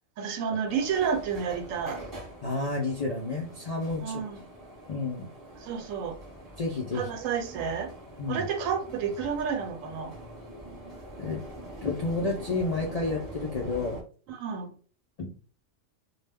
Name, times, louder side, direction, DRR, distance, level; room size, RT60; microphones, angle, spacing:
voice 1, 0.2-2.0 4.0-4.4 5.6-6.2 6.9-7.9 8.3-10.1 14.3-14.7, right 6 dB, 85° right, 1.0 m, -30 dB
sound 1, 0.6-14.0, right 1 dB, 20° right, 0.9 m, -44 dB
voice 2, 2.4-4.2 4.9-5.3 6.6-7.1 8.2-8.5 11.2-11.4 11.8-14.0 15.2-15.3, left 3 dB, 65° left, 0.4 m, -30 dB
2.2 x 2.2 x 3.3 m
omnidirectional pair, 1.3 m